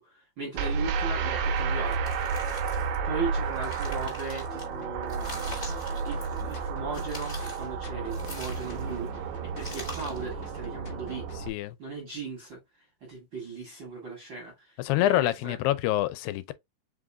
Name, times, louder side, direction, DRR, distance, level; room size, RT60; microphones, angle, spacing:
voice 1, 0.0-2.0 3.0-5.6 6.0-11.3 11.8-12.6 13.0-15.6, right 4 dB, 60° right, 1.3 m, -38 dB
sound 1, 0.6-11.5, right 5 dB, 75° right, 1.8 m, -32 dB
sound 2, 1.9-2.9 3.4-4.6 5.1-6.6 6.9-7.7 8.1-9.0 9.6-10.3, left 1 dB, 35° left, 0.6 m, -43 dB
sound 3, 4.4-11.5, left 3 dB, 65° left, 1.3 m, -46 dB
voice 2, 11.5-11.8 14.8-16.5, left 14 dB, 90° left, 2.3 m, -26 dB
5.1 x 3.7 x 2.3 m
omnidirectional pair, 4.0 m